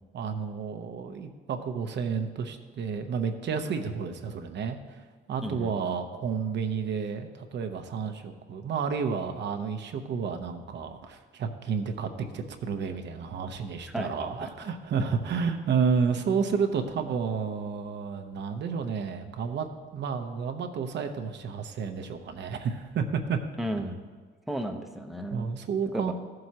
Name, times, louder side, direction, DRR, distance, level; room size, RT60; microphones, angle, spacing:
voice 1, 0.0-5.0 5.3-19.7 19.9-23.4 25.3-26.1, right 6 dB, 65° right, 6 dB, 0.8 m, -31 dB
voice 2, 5.4-5.9 13.9-14.5 23.6-24.0 24.5-25.5 25.9-26.1, equal, ahead, 3 dB, 0.8 m, -34 dB
14.0 x 7.7 x 2.9 m, 1.4 s
cardioid pair, 90°, 20 cm